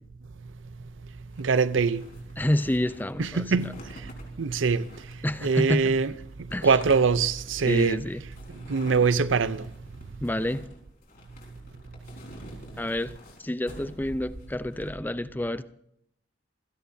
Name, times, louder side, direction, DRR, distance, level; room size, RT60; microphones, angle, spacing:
sound 1, 1.3-15.0, left 1 dB, 50° left, 4.7 m, -48 dB
voice 1, 1.4-2.0 3.2-3.7 4.4-4.9 5.4-6.1 6.6-8.0 8.7-9.6, right 5 dB, 80° right, 0.6 m, -23 dB
voice 2, 2.4-3.4 5.2-5.8 6.5-6.7 7.7-8.2 10.2-10.6 12.8-13.1 13.4-15.6, left 1 dB, 10° left, 0.5 m, -28 dB
28.0 x 17.0 x 2.7 m
head